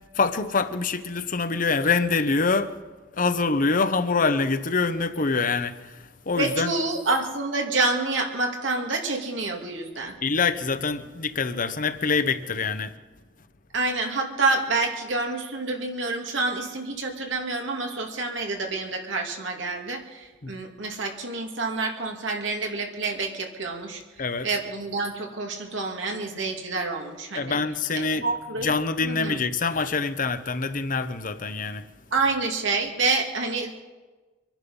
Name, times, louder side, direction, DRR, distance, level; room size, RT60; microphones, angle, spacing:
voice 1, 0.2-2.7 3.2-5.8 6.3-6.7 10.2-12.9 20.4-20.5 24.2-24.5 27.3-28.2 28.6-31.8, left 4 dB, 45° left, 0.9 m, -25 dB
voice 2, 6.3-10.2 13.7-27.6 27.9-28.7 29.0-29.4 32.1-33.7, right 3 dB, 80° right, 2.3 m, -28 dB
25.0 x 10.5 x 5.5 m
head